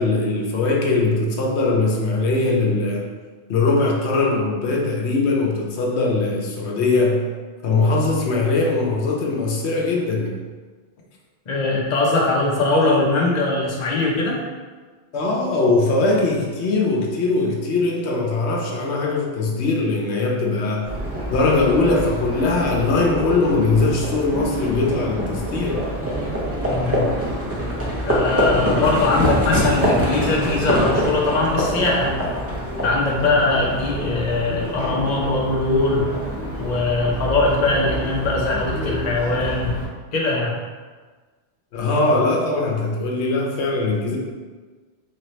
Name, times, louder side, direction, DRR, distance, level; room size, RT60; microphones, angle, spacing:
voice 1, 0.0-3.1 3.5-7.3 7.6-10.3 15.1-20.9 21.3-25.8 41.7-44.2, left 3 dB, 90° left, -1 dB, 0.9 m, -21 dB
voice 2, 11.5-14.4 26.7-27.1 28.0-32.3 32.8-36.1 36.6-39.8 40.1-40.6, left 2 dB, 45° left, -3 dB, 0.8 m, -21 dB
Livestock farm animals working animals, 20.9-39.8, equal, 15° right, 0.6 m, -25 dB
4.3 x 2.9 x 3.1 m, 1.4 s
omnidirectional pair, 1.1 m